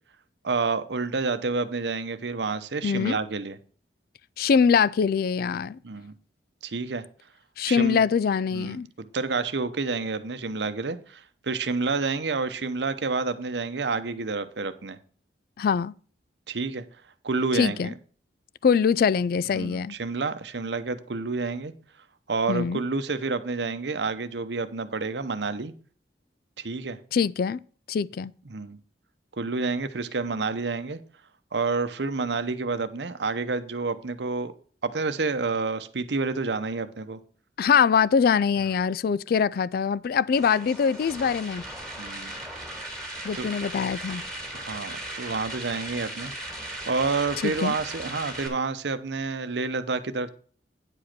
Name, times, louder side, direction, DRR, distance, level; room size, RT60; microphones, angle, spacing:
voice 1, 0.4-3.6 5.8-6.1 6.6-7.0 7.6-8.0 8.5-15.0 16.5-16.8 17.2-17.9 19.5-21.7 22.3-25.7 26.6-27.0 28.5-28.8 29.4-31.0 31.5-34.5 34.8-37.2 42.0-42.4 43.3-43.5 44.5-46.5 46.9-50.3, right 4 dB, 75° right, 0.8 m, -29 dB
voice 2, 2.8-3.2 4.4-5.8 7.6-8.9 15.6-15.9 17.5-17.9 18.6-19.9 22.5-22.8 27.1-27.6 27.9-28.3 37.6-41.6 43.2-44.2 47.4-47.7, left 6 dB, 55° left, 0.3 m, -23 dB
sound 1, 40.3-48.5, right 1 dB, ahead, 2.7 m, -37 dB
9.6 x 5.1 x 5.9 m
head